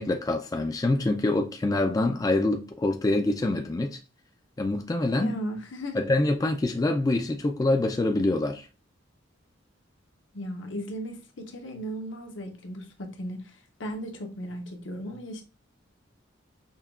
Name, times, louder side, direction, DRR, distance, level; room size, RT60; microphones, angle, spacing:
voice 1, 0.0-4.0 4.6-5.4 5.9-8.7, left 2 dB, 20° left, 0.3 m, -25 dB
voice 2, 5.2-6.1 10.3-15.4, equal, 70° left, 0.8 m, -36 dB
5.5 x 2.3 x 2.3 m
head